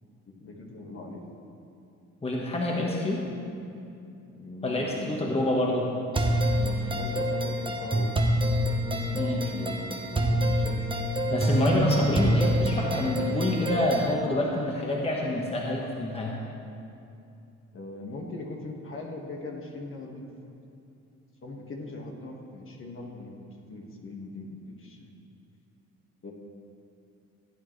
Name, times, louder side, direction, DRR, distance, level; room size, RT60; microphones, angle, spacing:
voice 1, 0.2-1.2 4.3-5.1 6.5-8.1 8.4-11.1 17.7-20.3 21.4-25.1 26.2-26.3, left 2 dB, 45° left, 0 dB, 1.7 m, -40 dB
voice 2, 2.2-3.3 4.6-5.9 9.1-9.4 11.3-16.4, left 1 dB, 20° left, -2 dB, 1.4 m, -27 dB
sound 1, 6.1-14.1, equal, 15° right, 1.1 m, -26 dB
16.0 x 9.0 x 3.3 m, 2.6 s
cardioid pair, 90°, 30 cm